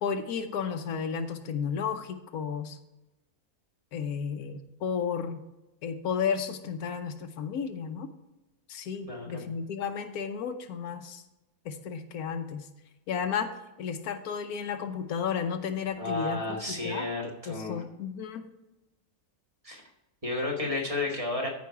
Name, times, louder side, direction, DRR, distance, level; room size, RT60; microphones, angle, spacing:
voice 1, 0.0-2.8 3.9-5.4 5.8-8.1 8.7-11.2 11.6-12.7 13.1-13.5 13.8-17.1 17.5-18.4, left 6 dB, 85° left, 8 dB, 1.3 m, -33 dB
voice 2, 9.1-9.4 16.0-17.8 19.6-19.8 20.2-21.5, left 2 dB, 25° right, -1 dB, 1.7 m, -32 dB
13.5 x 4.7 x 4.7 m, 0.98 s
omnidirectional pair, 1.6 m